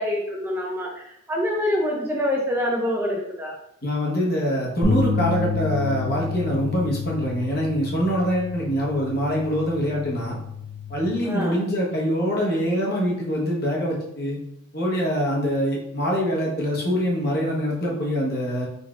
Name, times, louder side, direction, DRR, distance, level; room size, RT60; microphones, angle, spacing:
voice 1, 0.0-3.5 11.2-11.6, left 1 dB, 10° right, -2 dB, 0.4 m, -26 dB
voice 2, 3.8-10.4 10.9-14.4 14.7-18.7, equal, 50° left, -3 dB, 1.1 m, -24 dB
sound 1, 4.8-11.1, left 4 dB, 50° right, 0.8 m, -29 dB
3.9 x 3.6 x 2.4 m, 0.75 s
head